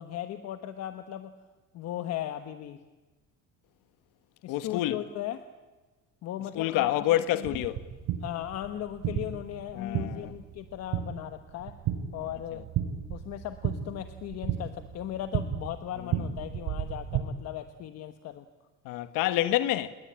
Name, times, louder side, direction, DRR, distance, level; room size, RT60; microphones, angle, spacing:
voice 1, 0.0-1.3 1.7-2.8 4.4-5.4 6.2-7.6 8.2-11.8 12.1-12.6 13.1-18.4, left 12 dB, 50° left, 1.3 m, -37 dB
voice 2, 4.5-5.0 6.5-7.8 9.7-10.3 18.8-19.9, left 14 dB, 75° left, 1.4 m, -27 dB
sound 1, 7.4-17.2, right 10 dB, 60° right, 3.5 m, -34 dB
29.0 x 21.0 x 8.8 m
cardioid pair, 175°, 34 cm